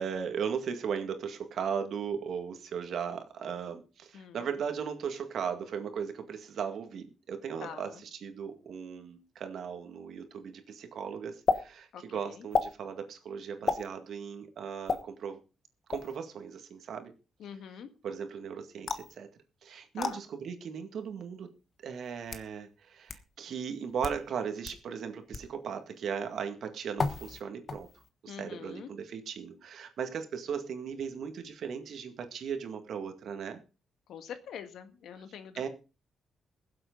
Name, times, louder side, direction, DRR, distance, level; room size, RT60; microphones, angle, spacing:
voice 1, 0.0-15.4 15.9-17.1 18.0-19.3 19.6-21.5 21.8-27.9 28.2-33.6 35.6-35.7, right 7 dB, 65° right, 7 dB, 2.0 m, -37 dB
voice 2, 7.6-8.0 11.9-12.5 17.4-17.9 20.0-20.2 28.3-28.9 34.1-35.7, left 8 dB, 85° left, 9 dB, 1.7 m, -44 dB
sound 1, 11.5-11.6 12.5-12.7 13.7-13.9 14.9-15.0 15.9-16.2 18.9-19.1 20.0-20.1 21.1-21.2 22.0-22.5 23.1-23.2 23.9-24.2 24.6-24.8 25.3-25.5 27.0-27.4 27.7-28.1, left 4 dB, 40° left, 1.3 m, -31 dB
21.5 x 7.8 x 3.9 m, 0.33 s
cardioid pair, 130°, 0 cm